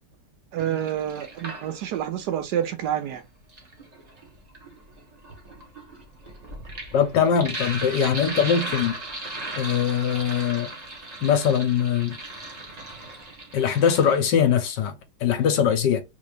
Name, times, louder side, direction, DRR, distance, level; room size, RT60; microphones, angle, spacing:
voice 1, 0.5-3.2, right 10 dB, 70° right, 1.1 m, -28 dB
Sink (filling or washing), 0.6-2.1 3.3-14.2, right 2 dB, 30° right, 0.9 m, -37 dB
voice 2, 6.9-8.9 9.6-10.7 11.2-12.2 13.5-14.9 15.2-16.0, left 8 dB, 75° left, 1.4 m, -21 dB
3.7 x 2.6 x 3.3 m
omnidirectional pair, 2.0 m